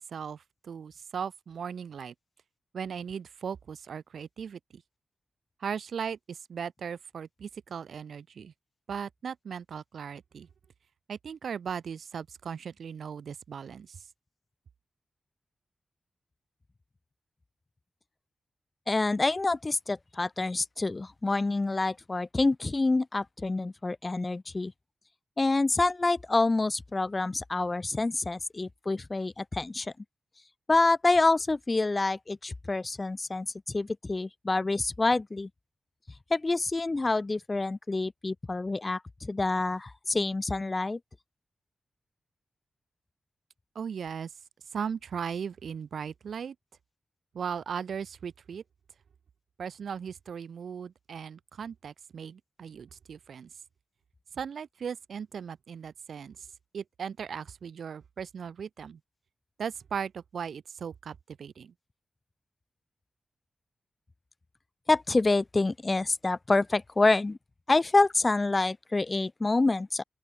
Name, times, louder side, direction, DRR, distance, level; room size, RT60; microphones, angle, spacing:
voice 1, 0.0-2.1 2.7-4.8 5.6-8.5 8.9-10.5 11.1-14.1 43.7-44.3 44.7-46.6 47.3-48.6 49.6-53.5 54.3-56.5 56.7-59.0 59.6-61.7, right 7 dB, 75° right, 2.4 m, -38 dB
voice 2, 18.9-24.7 25.4-29.9 30.7-35.5 36.3-41.0 64.9-67.4 67.7-70.0, left 3 dB, 25° left, 0.9 m, -27 dB
open air
wide cardioid pair, 160°, 0 cm